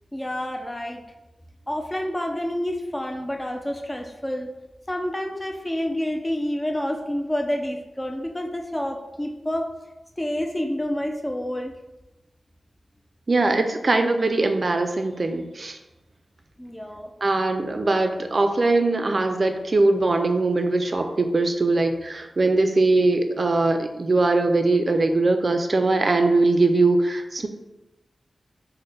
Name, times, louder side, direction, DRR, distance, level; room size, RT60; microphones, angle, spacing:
voice 1, 0.1-1.0 1.7-4.5 4.9-9.7 10.2-11.7 16.6-17.1, left 1 dB, 20° left, 3 dB, 0.4 m, -28 dB
voice 2, 13.3-15.8 17.2-27.5, right 2 dB, 55° right, 6 dB, 0.4 m, -21 dB
4.1 x 2.1 x 3.2 m, 1.0 s
cardioid pair, 45°, 0 cm